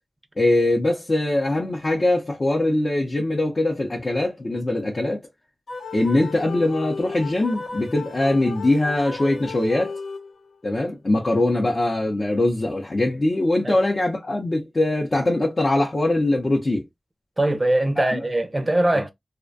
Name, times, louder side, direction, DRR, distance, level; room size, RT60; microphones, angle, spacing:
voice 1, 0.4-5.2 5.9-10.0 10.6-16.8 18.0-18.2, left 2 dB, 45° left, 0.5 m, -22 dB
sound 1, 5.7-10.6, left 4 dB, 85° left, 0.8 m, -35 dB
voice 2, 17.4-19.1, right 1 dB, 25° right, 0.4 m, -21 dB
2.4 x 2.1 x 2.4 m
wide cardioid pair, 65°, 0 cm